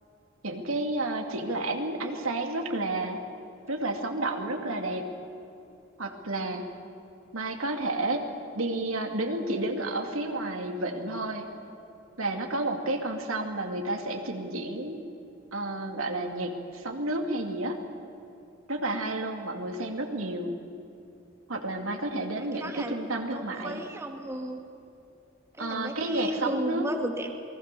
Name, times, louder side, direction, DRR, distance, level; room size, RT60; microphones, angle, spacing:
voice 1, 0.4-3.2 3.7-5.0 6.0-6.6 7.3-8.2 8.5-11.5 12.2-15.0 15.5-17.8 18.7-20.5 21.5-23.8 25.6-26.9, right 2 dB, 85° right, 3 dB, 2.5 m, -31 dB
voice 2, 22.4-23.0 23.3-24.6 25.6-27.3, right 1 dB, 15° right, 3 dB, 1.6 m, -34 dB
28.0 x 20.5 x 6.9 m, 2.9 s
head